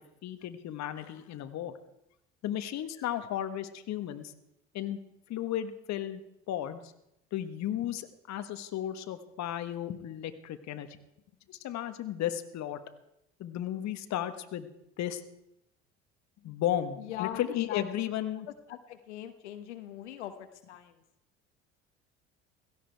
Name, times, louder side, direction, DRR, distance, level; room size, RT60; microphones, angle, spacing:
voice 1, 0.2-1.8 2.4-4.3 4.7-5.0 5.3-6.9 7.3-11.0 11.5-12.8 13.4-14.7 15.0-15.2 16.4-18.5, left 11 dB, 55° left, 9 dB, 1.4 m, -34 dB
voice 2, 17.0-17.8 18.7-20.3 20.7-21.0, left 12 dB, 85° left, 8 dB, 1.2 m, -40 dB
16.5 x 15.0 x 4.6 m, 0.84 s
hypercardioid pair, 65°, 34 cm